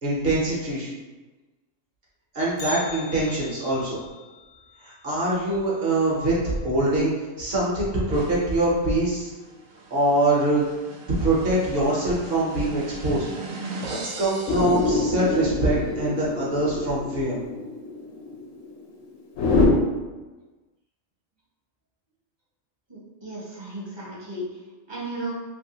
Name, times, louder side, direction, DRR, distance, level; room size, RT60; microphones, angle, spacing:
voice 1, 0.0-0.9 2.3-4.0 4.8-9.3 9.9-10.6 11.2-13.3 13.9-17.4, right 1 dB, 55° right, -5 dB, 0.9 m, -24 dB
Bell, 2.6-6.7 6.9-7.0 7.5-7.6 8.4-8.5 9.3-9.6 9.9-10.0, left 2 dB, 50° left, 0.7 m, -42 dB
sound 1, 8.1-15.7, right 3 dB, 85° right, 1.0 m, -40 dB
sound 2, 14.5-19.7, left 3 dB, 80° left, 1.0 m, -26 dB
voice 2, 22.9-24.4 24.9-25.3, right 1 dB, 30° right, -7 dB, 0.5 m, -34 dB
2.9 x 2.6 x 2.8 m, 1.2 s
omnidirectional pair, 1.3 m